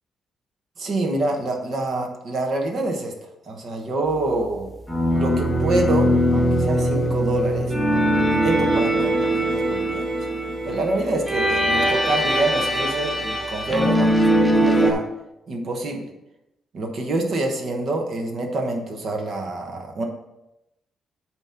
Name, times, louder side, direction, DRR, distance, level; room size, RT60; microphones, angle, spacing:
voice 1, 0.8-3.1 3.5-4.7 5.1-7.7 8.3-10.0 10.6-15.0 15.5-16.1 16.7-20.0, right 2 dB, 50° right, 3 dB, 1.2 m, -26 dB
sound 1, 4.9-14.9, right 1 dB, 5° right, 0.8 m, -21 dB
8.7 x 3.1 x 5.8 m, 0.92 s
cardioid pair, 150°, 0 cm